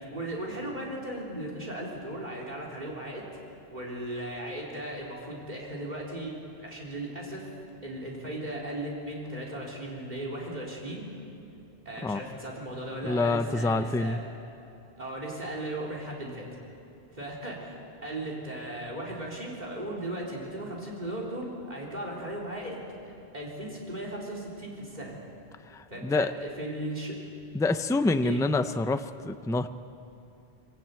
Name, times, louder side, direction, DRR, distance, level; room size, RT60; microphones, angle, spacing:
voice 1, 0.0-3.2 3.7-7.5 7.8-11.1 11.9-14.2 15.0-16.5 17.1-17.8 18.0-25.1 25.9-27.1 28.2-28.4, right 1 dB, 45° right, -2 dB, 3.8 m, -37 dB
voice 2, 13.0-14.2 25.7-26.3 27.5-29.7, left 3 dB, 5° left, 10 dB, 0.3 m, -27 dB
22.5 x 15.0 x 9.0 m, 2.7 s
omnidirectional pair, 1.0 m